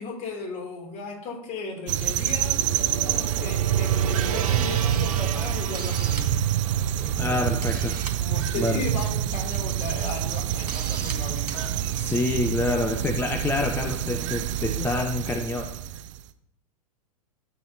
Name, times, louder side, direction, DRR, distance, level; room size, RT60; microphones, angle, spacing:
voice 1, 0.0-6.4 7.0-7.5 8.2-12.3, left 3 dB, 35° left, 0 dB, 3.1 m, -36 dB
Gong, 1.8-10.1, right 6 dB, 70° right, 1.2 m, -37 dB
sound 1, 1.9-16.2, right 11 dB, 55° right, 0.7 m, -27 dB
Camera, 5.1-5.2 5.6-6.4 7.2-7.3 7.6-8.2 9.3-9.6 10.0-10.1 10.7-11.1 11.5-11.6, right 4 dB, 85° right, 1.6 m, -38 dB
voice 2, 7.2-8.0 8.6-8.8 12.0-15.7, left 3 dB, 10° left, 5 dB, 0.7 m, -27 dB
12.5 x 8.0 x 2.9 m, 0.75 s
figure-of-eight pair, 95°, 20 cm